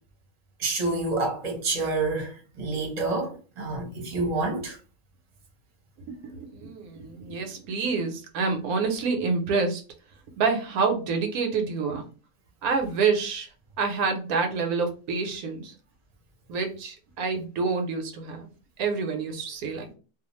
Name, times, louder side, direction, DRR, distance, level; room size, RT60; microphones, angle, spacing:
voice 1, 0.6-4.8, right 3 dB, 35° right, 0.7 m, -28 dB
voice 2, 6.1-9.8 10.4-12.1 12.6-13.5 13.8-15.7 16.5-18.5 18.8-19.9, right 4 dB, 80° right, 1.1 m, -27 dB
2.4 x 2.3 x 2.9 m
omnidirectional pair, 1.5 m